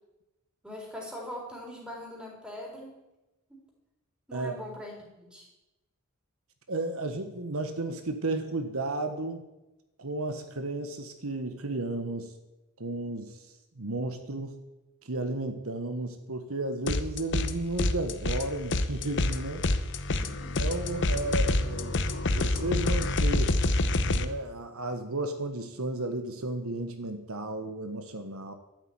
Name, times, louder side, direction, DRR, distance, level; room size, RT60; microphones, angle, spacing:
voice 1, 0.6-3.0 3.5-3.6 4.3-5.5 20.0-20.8, left 1 dB, 5° right, -2 dB, 4.1 m, -42 dB
voice 2, 6.7-9.5 10.0-12.3 12.8-13.4 13.7-14.6 15.0-19.7 20.6-22.0 22.3-23.6 24.1-28.5, right 2 dB, 70° right, 7 dB, 1.4 m, -33 dB
sound 1, 16.9-17.5 17.8-24.2, left 2 dB, 55° left, 0.9 m, -27 dB
13.0 x 8.0 x 9.5 m, 0.98 s
head